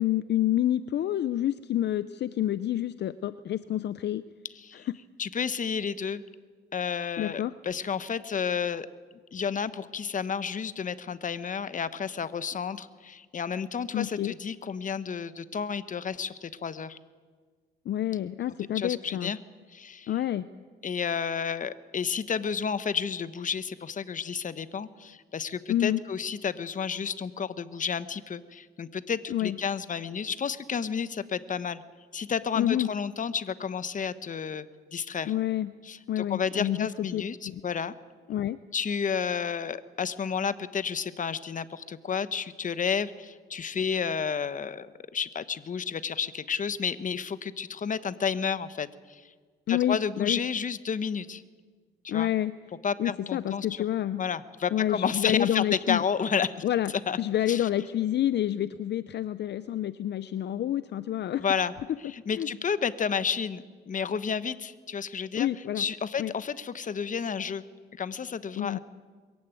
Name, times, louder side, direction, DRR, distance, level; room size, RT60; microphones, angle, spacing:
voice 1, 0.0-4.2 4.7-5.0 7.2-7.5 13.9-14.3 17.9-19.3 20.1-20.5 25.7-26.0 29.3-29.6 32.6-32.9 35.3-35.7 36.1-37.6 38.3-38.6 49.7-50.4 52.1-52.5 53.0-54.2 54.7-56.0 56.6-56.9 57.2-61.4 62.3-62.5 65.3-65.8 66.2-66.3 68.6-68.8, left 12 dB, 60° left, 15 dB, 0.6 m, -28 dB
voice 2, 4.6-4.9 5.2-6.2 6.7-8.9 9.3-17.0 18.7-19.4 19.7-20.1 20.8-31.8 32.1-34.7 34.9-35.3 35.8-37.9 38.7-49.3 49.7-51.4 52.0-52.3 52.8-53.8 54.2-56.6 56.9-57.2 57.5-57.7 61.3-61.7 62.0-65.5 65.8-67.6 67.9-68.8, left 6 dB, 40° left, 14 dB, 1.1 m, -31 dB
22.5 x 15.0 x 9.2 m, 1.5 s
cardioid pair, 90°, 20 cm